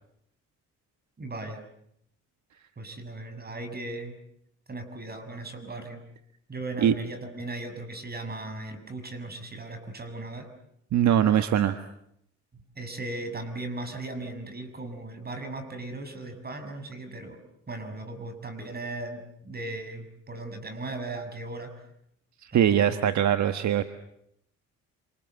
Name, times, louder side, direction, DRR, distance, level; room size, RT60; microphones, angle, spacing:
voice 1, 1.2-1.6 2.8-4.2 4.7-6.0 6.5-10.5 12.5-17.4 17.7-21.8 22.5-23.1, right 2 dB, 30° right, 8 dB, 6.5 m, -37 dB
voice 2, 10.9-11.8 22.4-23.8, right 10 dB, 65° right, 9 dB, 1.4 m, -22 dB
27.0 x 27.0 x 8.0 m, 0.75 s
cardioid pair, 90°, 30 cm